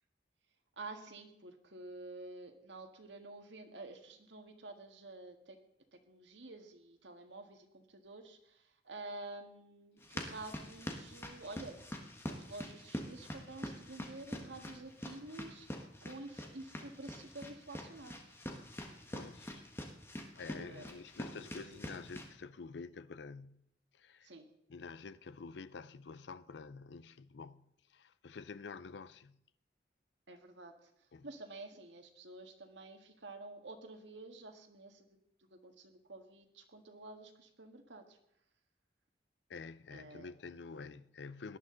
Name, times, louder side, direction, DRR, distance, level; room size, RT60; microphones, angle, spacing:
voice 1, 0.8-5.6 5.9-11.9 12.3-18.5 20.6-20.9 21.3-22.0 24.2-24.5 30.3-35.1 35.5-38.2 39.9-40.3, right 2 dB, 85° right, 1.7 m, -50 dB
sound 1, 10.0-22.3, equal, 15° left, 1.4 m, -45 dB
voice 2, 19.1-19.6 20.3-23.6 23.9-24.3 24.7-29.4 31.1-31.3 39.5-41.6, left 4 dB, 75° left, 0.5 m, -48 dB
18.0 x 11.5 x 3.8 m
head